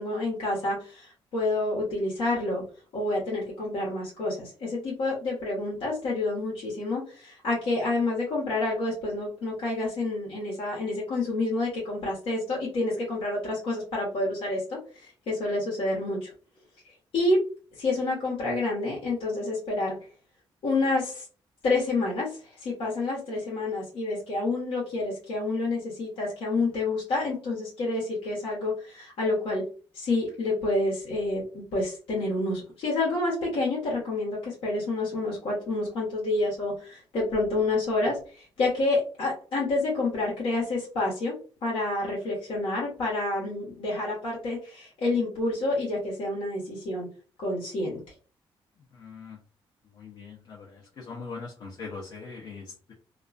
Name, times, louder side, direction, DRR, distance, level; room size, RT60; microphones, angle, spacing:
voice 1, 0.0-2.6 2.9-16.3 17.1-17.4 17.8-20.0 20.6-21.2 21.6-22.3 22.6-29.6 29.9-41.3 41.6-47.1 47.4-48.0, left 2 dB, 75° left, -5 dB, 1.0 m, -28 dB
voice 2, 48.9-49.4 50.0-52.9, left 4 dB, 50° left, -2 dB, 0.6 m, -41 dB
2.4 x 2.2 x 2.4 m, 0.38 s
cardioid pair, 175°, 10 cm